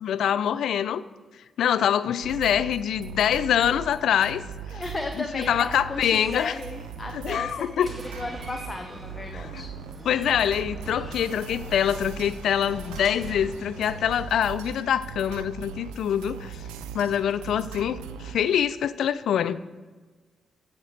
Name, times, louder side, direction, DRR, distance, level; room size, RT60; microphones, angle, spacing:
voice 1, 0.0-1.0 1.6-4.4 5.3-6.5 7.1-7.9 9.3-9.6 10.1-16.6 16.9-19.6, left 9 dB, 75° left, 15 dB, 0.3 m, -25 dB
sound 1, 2.2-18.6, right 6 dB, 90° right, 0.5 m, -39 dB
voice 2, 4.7-9.7, left 2 dB, 30° left, 5 dB, 0.9 m, -35 dB
Door, 6.1-14.1, right 2 dB, 25° right, 3.1 m, -45 dB
7.6 x 6.6 x 7.3 m, 1.4 s
supercardioid pair, 45°, 0 cm